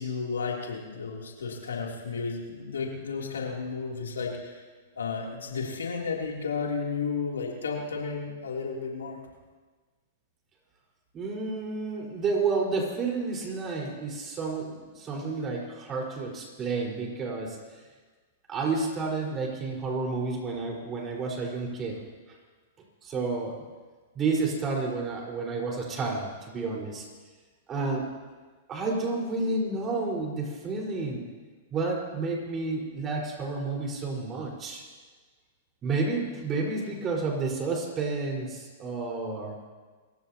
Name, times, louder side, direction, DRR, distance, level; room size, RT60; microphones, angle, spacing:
voice 1, 0.0-4.6 4.9-9.2, left 5 dB, 85° left, -1 dB, 3.3 m, -33 dB
voice 2, 11.1-17.6 18.5-22.0 23.0-23.6 24.1-27.0 27.7-28.1 28.7-31.3 31.7-34.8 35.8-39.5, right 3 dB, 30° right, -1 dB, 4.9 m, -30 dB
28.0 x 15.5 x 3.0 m, 1.4 s
hypercardioid pair, 110°, 0 cm